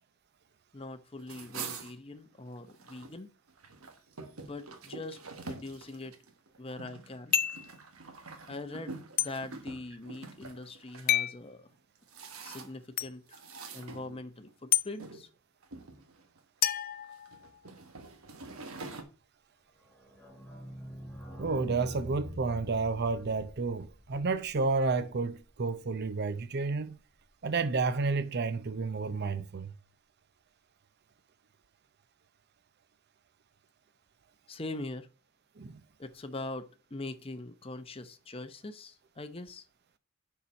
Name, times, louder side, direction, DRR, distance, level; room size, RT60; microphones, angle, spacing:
voice 1, 0.7-3.3 4.4-5.2 5.4-6.1 6.6-7.3 8.5-11.7 12.4-13.4 13.7-15.3 34.5-35.1 36.0-39.6, left 2 dB, 25° left, 0.8 m, -42 dB
sound 1, 1.2-3.1 3.5-11.1 11.7-12.9 13.3-14.5 15.0-15.2 15.6-16.4 17.0-19.0, right 4 dB, 90° right, 1.3 m, -46 dB
sound 2, 7.3-7.7 9.2-9.3 11.1-11.4 13.0-13.1 14.7-14.9 16.6-17.7, left 12 dB, 45° left, 0.4 m, -29 dB
sound 3, 19.8-25.4 25.7-25.8 26.0-26.1 26.3-26.4, equal, 5° left, 2.4 m, -45 dB
voice 2, 21.4-27.0 27.4-29.7 35.6-35.8, right 4 dB, 50° right, 0.6 m, -31 dB
6.8 x 5.7 x 5.3 m
head